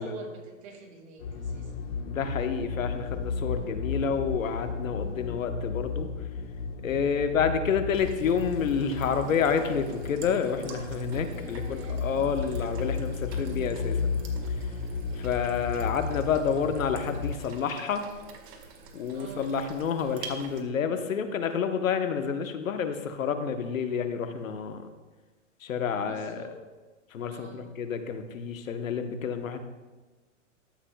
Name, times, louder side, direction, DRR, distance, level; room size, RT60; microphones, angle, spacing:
voice 1, 0.0-1.8 11.3-12.0 19.1-19.5 26.0-26.6 27.3-27.7, right 3 dB, 55° right, 3 dB, 2.1 m, -46 dB
sound 1, 1.2-17.3, left 5 dB, 65° left, 1.3 m, -34 dB
voice 2, 2.1-6.1 6.8-14.0 15.1-18.1 18.9-24.9 25.6-26.5 27.1-29.6, left 6 dB, 85° left, 7 dB, 1.0 m, -29 dB
sound 2, 7.9-20.6, right 5 dB, 35° right, 1.1 m, -48 dB
13.0 x 7.5 x 2.2 m, 1.3 s
hypercardioid pair, 125°, 39 cm